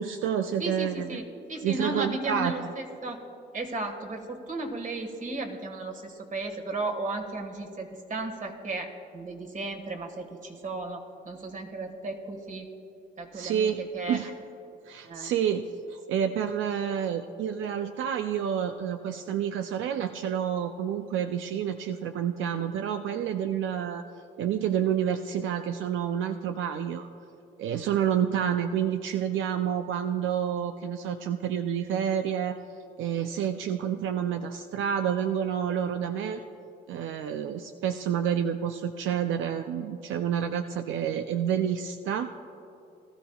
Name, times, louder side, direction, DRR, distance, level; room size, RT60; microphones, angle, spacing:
voice 1, 0.0-1.1 1.6-2.5 13.3-13.8 14.1-14.3 14.9-24.0 24.4-27.1 27.6-32.6 33.0-36.4 36.9-42.4, right 9 dB, 80° right, 7 dB, 0.5 m, -29 dB
voice 2, 0.6-3.2 3.5-12.7 13.2-14.3 15.0-15.3 36.3-36.4, right 2 dB, 40° right, 4 dB, 1.6 m, -35 dB
19.5 x 13.0 x 2.3 m, 2.8 s
cardioid pair, 90°, 20 cm